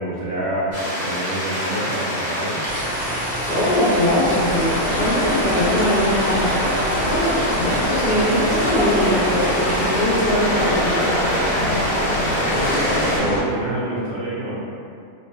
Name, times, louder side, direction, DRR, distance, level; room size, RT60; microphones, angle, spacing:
voice 1, 0.0-2.6 12.5-14.6, right 1 dB, 65° right, -9 dB, 0.4 m, -26 dB
sound 1, 0.7-13.2, equal, 15° left, 0.6 m, -27 dB
sound 2, 2.6-10.0, right 1 dB, 35° right, 0.7 m, -32 dB
voice 2, 3.5-11.3, equal, 70° left, -11 dB, 0.4 m, -22 dB
sound 3, 4.1-13.4, left 1 dB, 90° left, 1.0 m, -23 dB
2.6 x 2.4 x 2.2 m, 2.4 s
omnidirectional pair, 1.4 m